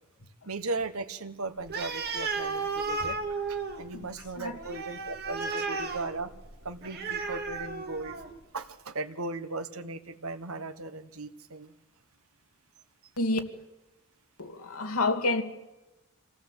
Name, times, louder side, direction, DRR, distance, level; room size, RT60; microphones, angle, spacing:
voice 1, 0.4-3.2 3.5-6.3 6.6-8.2 8.5-11.7, right 3 dB, 70° right, 1.4 m, -37 dB
Animal, 1.7-8.4, right 4 dB, 45° right, 2.5 m, -34 dB
voice 2, 14.4-15.4, left 2 dB, 80° left, 2.3 m, -28 dB
25.5 x 17.5 x 8.2 m
head